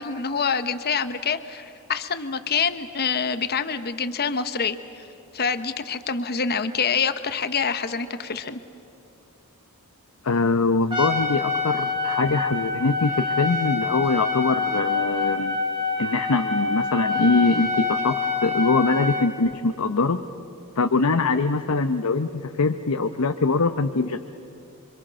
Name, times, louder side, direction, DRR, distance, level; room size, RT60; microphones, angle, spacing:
voice 1, 0.0-5.0 5.3-8.6, left 6 dB, 45° left, 11 dB, 1.0 m, -26 dB
voice 2, 10.2-15.6 16.0-20.2 20.8-24.2, left 3 dB, 75° left, 7 dB, 0.8 m, -23 dB
Trumpet, 10.9-19.3, left 4 dB, 20° right, 3.5 m, -26 dB
26.5 x 25.0 x 6.3 m, 2.9 s
head